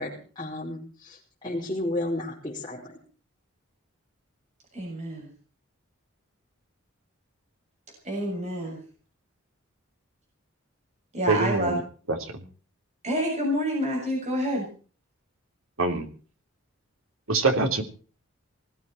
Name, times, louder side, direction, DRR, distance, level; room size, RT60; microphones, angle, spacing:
voice 1, 0.0-2.9, left 1 dB, 20° left, -6 dB, 4.8 m, -33 dB
voice 2, 4.7-5.3 8.0-8.8 11.1-11.8 13.0-14.7, equal, 35° right, -1 dB, 7.2 m, -28 dB
voice 3, 11.3-11.8 12.1-12.4 15.8-16.1 17.3-17.8, right 3 dB, 80° right, 4 dB, 3.4 m, -24 dB
20.0 x 15.5 x 4.5 m, 0.40 s
head